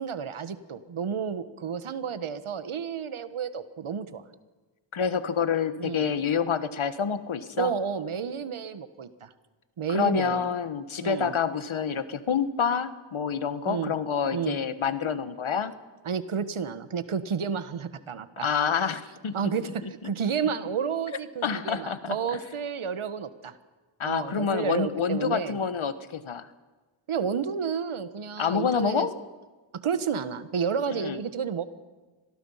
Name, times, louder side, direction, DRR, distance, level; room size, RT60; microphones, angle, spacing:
voice 1, 0.0-4.2 5.8-6.1 7.6-9.3 9.8-10.4 11.0-11.3 13.7-13.9 14.3-14.6 16.0-18.5 19.3-23.5 24.0-25.6 27.1-29.1 29.7-31.6, right 6 dB, 85° right, 12 dB, 1.4 m, -31 dB
voice 2, 4.9-7.7 9.9-15.7 18.4-19.9 21.4-22.4 24.0-26.5 28.4-29.1 30.9-31.2, left 6 dB, 75° left, 12 dB, 1.4 m, -28 dB
25.5 x 19.0 x 5.7 m, 1.3 s
cardioid pair, 45°, 48 cm